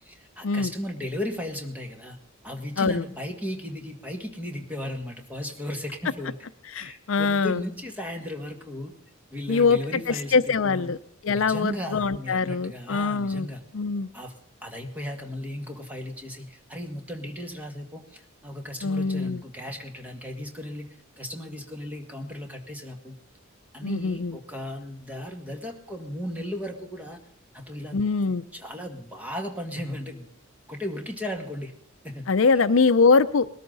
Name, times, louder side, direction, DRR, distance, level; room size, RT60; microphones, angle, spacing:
voice 1, 0.0-2.2 2.4-6.4 6.8-8.9 9.3-10.9 11.3-13.6 14.1-14.3 14.6-23.2 23.7-27.2 27.5-30.3 30.7-31.7 32.0-32.3 32.5-32.6, left 1 dB, 10° right, 3 dB, 2.0 m, -36 dB
voice 2, 6.7-7.6 9.5-9.8 10.1-11.0 11.2-14.1 18.8-19.4 23.8-24.4 27.9-28.4 32.3-33.5, left 4 dB, 70° left, 13 dB, 0.6 m, -23 dB
20.0 x 13.5 x 4.0 m, 0.65 s
head